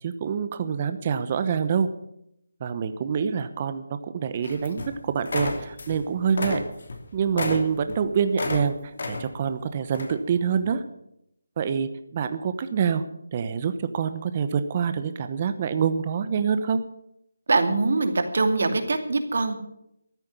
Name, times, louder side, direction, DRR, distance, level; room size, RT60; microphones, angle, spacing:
voice 1, 0.0-1.9 2.6-6.6 7.1-10.8 11.6-13.0 13.3-16.8, right 7 dB, 30° right, 10 dB, 0.9 m, -26 dB
sound 1, 4.4-5.0 5.2-6.0 6.3-8.6 9.0-9.5 9.9-10.2, left 2 dB, 60° left, 3.0 m, -31 dB
voice 2, 17.5-19.5, right 3 dB, 65° right, 7 dB, 2.5 m, -23 dB
14.0 x 9.6 x 8.4 m, 0.78 s
figure-of-eight pair, 160°, 0 cm